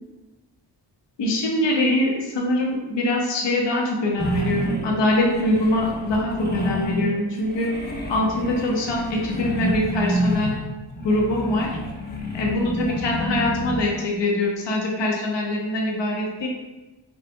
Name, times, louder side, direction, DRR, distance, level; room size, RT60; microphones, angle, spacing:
voice 1, 1.2-7.7 8.1-10.5 11.0-11.7 12.3-16.5, left 1 dB, 70° left, -1 dB, 0.8 m, -23 dB
sound 1, 4.2-7.2 7.4-14.0, equal, 25° left, 0.7 m, -28 dB
4.1 x 2.5 x 2.3 m, 1.1 s
cardioid pair, 40°, 44 cm